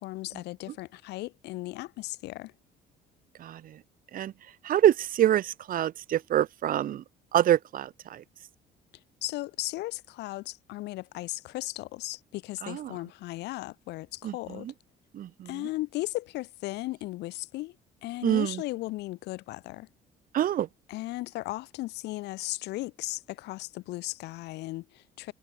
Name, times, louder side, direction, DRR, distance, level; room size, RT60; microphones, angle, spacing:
voice 1, 0.0-2.5 9.2-14.7 15.4-17.7 18.0-19.9 20.9-25.3, left 18 dB, 80° left, 1.5 m, -36 dB
voice 2, 3.4-3.8 4.1-4.3 4.6-7.0 7.3-8.2 12.6-13.0 14.2-14.7 15.1-15.7 18.2-18.6 20.3-20.7, right 11 dB, 55° right, 1.2 m, -26 dB
cardioid pair, 110°, 17 cm